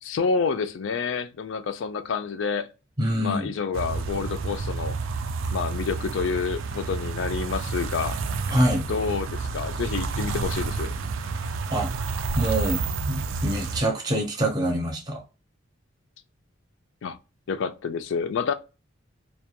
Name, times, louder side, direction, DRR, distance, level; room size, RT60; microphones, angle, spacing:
voice 1, 0.0-2.7 3.2-5.0 5.5-8.2 8.9-10.9 17.0-17.2 17.5-18.5, left 5 dB, 65° left, 0.4 m, -28 dB
voice 2, 3.0-3.5 8.5-8.9 11.7-11.9 12.4-15.2, right 1 dB, 20° right, 0.6 m, -25 dB
sound 1, 3.7-13.8, right 4 dB, 70° right, 0.4 m, -30 dB
2.3 x 2.2 x 2.8 m
head